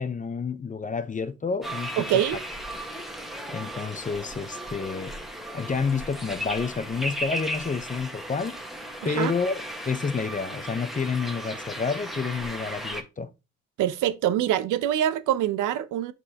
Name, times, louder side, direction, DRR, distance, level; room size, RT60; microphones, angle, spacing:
voice 1, 0.0-2.2 3.5-5.2 5.5-8.6 9.0-13.3, left 5 dB, 25° left, 0.8 m, -29 dB
sound 1, 1.6-13.0, equal, ahead, 1.4 m, -36 dB
voice 2, 2.0-2.4 9.0-9.3 13.8-16.1, right 11 dB, 85° right, 0.7 m, -24 dB
6.1 x 5.5 x 2.8 m
cardioid pair, 90°, 30 cm